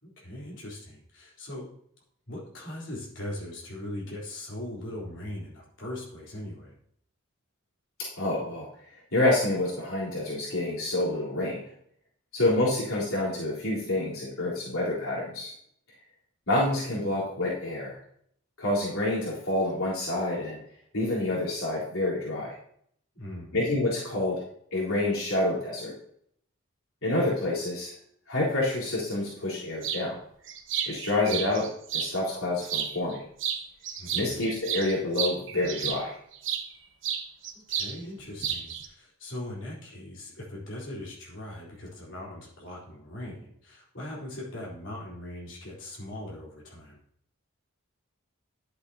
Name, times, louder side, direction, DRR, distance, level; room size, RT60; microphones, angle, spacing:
voice 1, 0.0-1.7 2.3-6.7 23.1-23.6 31.3-31.4 34.0-34.3 37.5-47.0, left 1 dB, 55° left, -5 dB, 3.9 m, -40 dB
voice 2, 8.2-8.7 9.1-11.6 12.3-15.5 16.5-18.0 18.6-20.6 20.9-22.6 23.5-24.4 24.7-25.9 27.0-27.9 28.3-30.2 30.9-33.2 34.1-36.1, left 2 dB, 80° left, -8 dB, 3.8 m, -28 dB
sound 1, 29.8-30.0 30.5-32.1 32.6-33.1 33.4-36.7 37.0-37.9 38.2-38.9, right 8 dB, 60° right, 0.9 m, -32 dB
11.0 x 8.0 x 2.9 m, 0.66 s
head